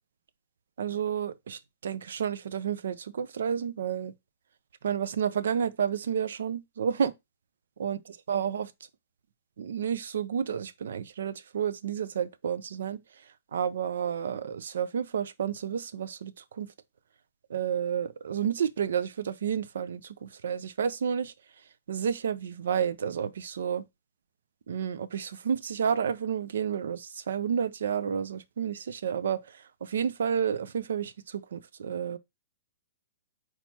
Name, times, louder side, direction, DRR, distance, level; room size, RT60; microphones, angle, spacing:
voice 1, 0.8-4.1 4.8-7.1 7.8-8.0 8.3-8.7 9.6-13.0 13.5-16.7 17.5-21.3 21.9-23.9 24.7-32.2, right 8 dB, 70° right, 0.5 m, -30 dB
4.3 x 4.2 x 2.8 m
hypercardioid pair, 120°, 0 cm